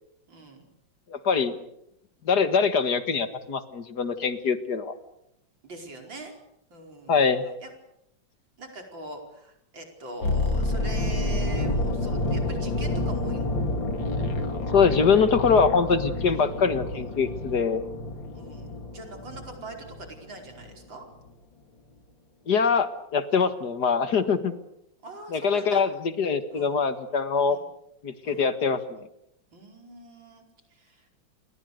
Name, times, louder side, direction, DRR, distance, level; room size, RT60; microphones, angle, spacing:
voice 1, 0.3-0.7 5.6-6.4 6.7-7.2 7.6-7.7 8.6-13.5 16.3-16.5 18.3-21.1 25.0-25.8 26.5-26.8 27.5-27.7 28.2-28.5 29.5-30.5 30.7-31.1, right 2 dB, 80° right, 3 dB, 5.6 m, -42 dB
voice 2, 1.1-1.6 2.3-4.9 7.1-7.5 14.7-17.8 22.5-24.5 25.3-27.6 28.0-29.0, left 5 dB, 60° left, 10 dB, 2.2 m, -23 dB
sound 1, 10.2-20.2 20.5-20.7, left 2 dB, 90° left, 3.3 m, -29 dB
29.5 x 23.0 x 6.7 m, 0.78 s
omnidirectional pair, 2.0 m